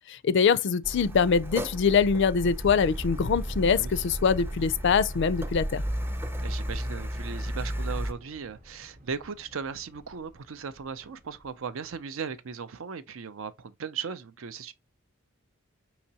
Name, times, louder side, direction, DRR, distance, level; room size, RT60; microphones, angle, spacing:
voice 1, 0.1-5.8, left 6 dB, 60° left, 0.4 m, -24 dB
Car, 0.8-8.1, equal, 10° right, 0.4 m, -34 dB
sound 1, 2.6-11.7, equal, 40° right, 0.9 m, -45 dB
voice 2, 6.4-14.7, right 6 dB, 75° right, 0.5 m, -37 dB
5.6 x 2.9 x 2.8 m
head